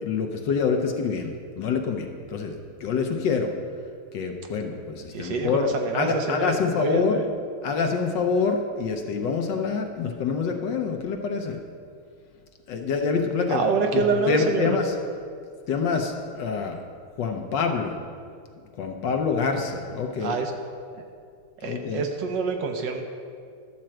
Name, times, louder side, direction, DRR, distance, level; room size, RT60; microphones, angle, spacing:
voice 1, 0.0-3.5 4.1-7.2 7.6-11.6 12.7-13.6 13.9-14.9 15.7-16.8 17.2-18.0 18.8-20.4 21.6-22.1, left 5 dB, 65° left, 4 dB, 1.2 m, -26 dB
voice 2, 5.1-7.4 13.5-14.8 20.2-20.5 21.6-23.0, right 4 dB, 65° right, 4 dB, 1.2 m, -26 dB
11.5 x 4.4 x 7.5 m, 2.3 s
omnidirectional pair, 2.4 m